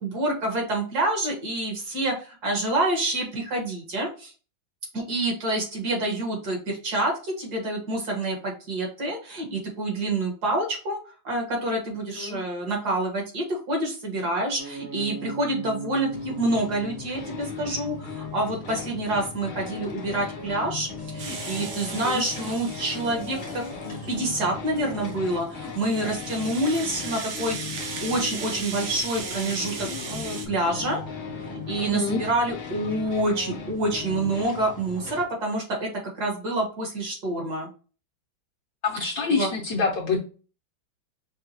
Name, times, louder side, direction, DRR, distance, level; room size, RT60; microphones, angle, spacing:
voice 1, 0.0-4.3 4.9-11.0 11.2-31.0 31.7-35.9 36.2-37.7 39.4-39.5, right 1 dB, 55° right, 1 dB, 1.8 m, -27 dB
sound 1, 14.6-34.4, left 4 dB, 80° left, 0.5 m, -38 dB
sound 2, 16.1-35.2, left 3 dB, 35° left, 0.8 m, -42 dB
Rattle (instrument), 21.2-24.2 24.7-30.5, right 5 dB, 85° right, 1.7 m, -37 dB
voice 2, 31.8-32.2 38.8-40.2, left 4 dB, 60° left, -1 dB, 1.0 m, -26 dB
5.4 x 2.3 x 2.8 m, 0.36 s
omnidirectional pair, 2.1 m